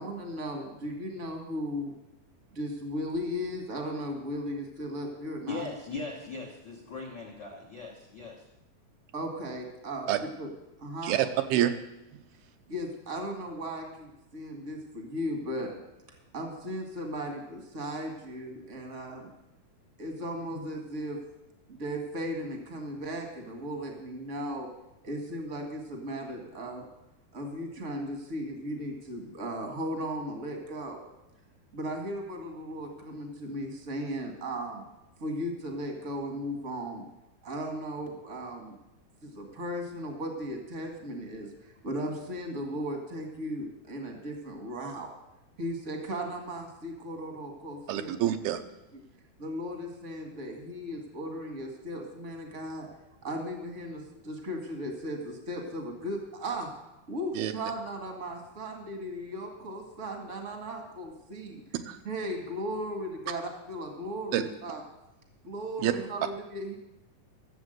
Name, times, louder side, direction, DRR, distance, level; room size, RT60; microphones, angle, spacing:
voice 1, 0.0-1.9 2.5-5.7 9.1-10.5 10.8-11.2 12.7-15.7 16.3-19.3 20.0-21.2 21.7-24.7 25.0-26.8 27.3-31.0 31.7-34.8 35.2-37.0 37.4-38.8 39.2-45.1 45.6-48.1 49.4-52.9 53.2-56.7 57.1-61.6 62.0-64.8 65.4-66.8, equal, 45° right, 3 dB, 1.0 m, -36 dB
voice 2, 5.5-8.4, left 4 dB, 75° left, -2 dB, 1.0 m, -39 dB
voice 3, 11.0-11.7 47.9-48.6 57.4-57.5 61.9-62.0 64.3-64.4 65.8-65.9, right 12 dB, 85° right, 8 dB, 2.5 m, -26 dB
13.0 x 7.3 x 7.9 m, 0.93 s
omnidirectional pair, 4.3 m